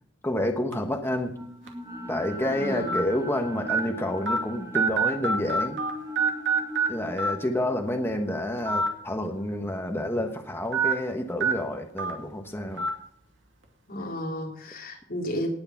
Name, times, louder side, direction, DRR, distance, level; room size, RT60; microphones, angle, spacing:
voice 1, 0.2-1.4 2.1-5.8 6.9-12.9, left 1 dB, 15° left, 4 dB, 1.2 m, -29 dB
sound 1, 0.7-0.9 1.7-1.8 2.9-3.0 3.7-3.8 4.3-4.4 4.7-5.9 6.2-6.9 7.2-7.3 8.6-8.9 9.3-9.4 10.7-10.9 11.4-11.5 12.0-12.1 12.8-12.9, right 4 dB, 70° right, 2.5 m, -24 dB
sound 2, 1.3-11.5, left 1 dB, 15° right, 2.2 m, -41 dB
voice 2, 2.5-3.0 13.9-15.5, equal, 50° left, 0 dB, 3.5 m, -33 dB
19.0 x 6.7 x 5.9 m, 0.64 s
head